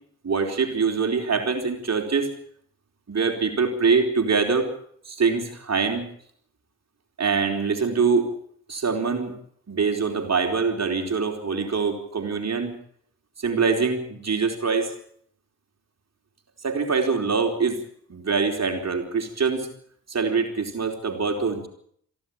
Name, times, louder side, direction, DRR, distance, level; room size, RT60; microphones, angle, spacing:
voice 1, 0.2-2.3 3.1-4.7 5.1-6.1 7.2-8.3 8.7-9.3 9.7-12.7 13.4-14.9 16.6-17.8 18.1-19.7 20.1-21.7, right 5 dB, 35° right, 4 dB, 4.2 m, -24 dB
28.5 x 11.5 x 8.8 m, 0.66 s
figure-of-eight pair, 40°, 45 cm